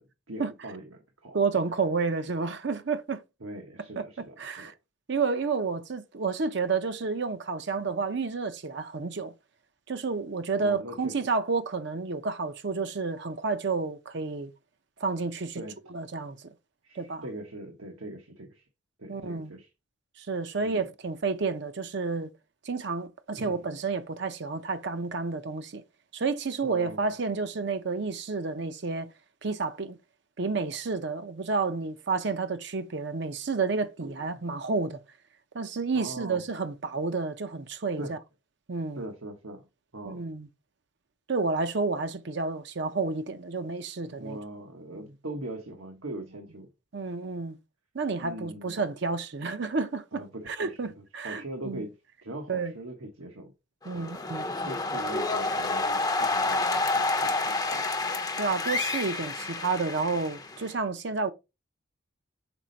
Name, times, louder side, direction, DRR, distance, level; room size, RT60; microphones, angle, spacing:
voice 1, 0.0-1.4 3.4-4.7 10.6-11.3 15.6-15.8 16.8-18.7 19.0-19.7 20.6-20.9 23.3-23.6 26.6-27.1 34.0-34.5 35.9-36.4 38.0-38.2 39.0-39.6 39.9-40.2 44.2-46.7 48.2-48.8 50.1-52.0 52.2-53.5 53.9-54.1 54.6-57.9, right 1 dB, 85° right, 1.2 m, -41 dB
voice 2, 1.3-3.2 4.0-4.1 4.4-4.7 5.1-9.3 9.9-14.5 15.0-15.6 15.9-16.4 17.0-17.3 19.1-19.5 20.2-22.3 22.6-25.8 26.1-29.1 29.4-30.0 30.4-35.0 35.5-38.2 38.7-39.0 40.1-40.5 41.3-44.4 44.9-45.0 46.9-47.6 47.9-51.8 52.5-52.7 53.9-54.5 58.4-61.3, right 4 dB, 55° right, 0.6 m, -30 dB
sound 1, 53.8-60.7, left 3 dB, 20° left, 0.6 m, -29 dB
6.0 x 4.2 x 3.9 m
head